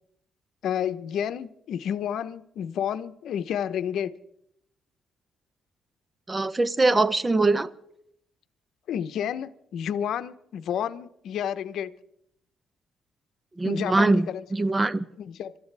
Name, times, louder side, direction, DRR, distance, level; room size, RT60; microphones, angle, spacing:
voice 1, 0.6-4.1 8.9-11.9 13.6-14.4 15.2-15.5, left 9 dB, 75° left, 13 dB, 0.8 m, -30 dB
voice 2, 6.3-7.7 13.6-15.0, right 2 dB, 20° right, 16 dB, 0.8 m, -22 dB
26.5 x 13.5 x 3.4 m, 0.76 s
cardioid pair, 90°, 0 cm